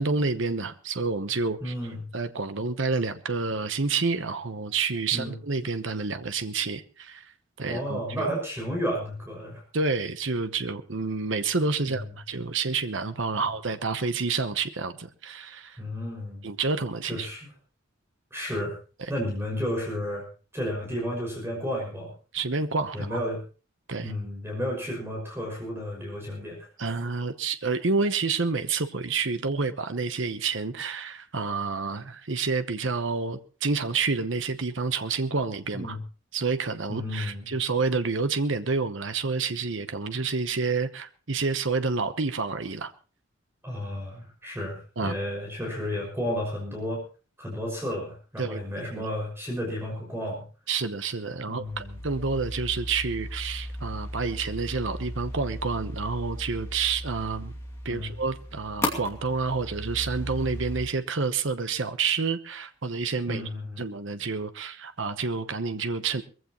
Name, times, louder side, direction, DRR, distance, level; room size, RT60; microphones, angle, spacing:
voice 1, 0.0-1.7 2.1-7.2 7.6-8.3 9.7-15.8 16.4-17.3 22.3-23.2 23.9-24.1 26.8-36.0 36.3-42.9 45.0-45.1 48.4-48.6 48.9-49.1 50.7-57.5 57.8-63.4 63.8-66.2, right 4 dB, 65° right, 10 dB, 1.0 m, -29 dB
voice 2, 1.6-2.1 5.1-5.4 7.7-9.6 11.9-12.0 13.3-13.4 15.8-16.5 17.0-17.5 18.3-18.7 19.1-20.2 20.5-22.1 22.9-23.4 24.0-26.7 35.7-36.0 36.9-37.5 43.6-47.0 47.4-50.4 51.5-52.0 57.9-58.1 63.3-63.8, equal, 10° right, -1 dB, 5.9 m, -32 dB
sound 1, 51.6-60.9, equal, 15° left, 2.5 m, -36 dB
21.5 x 15.5 x 3.1 m, 0.36 s
head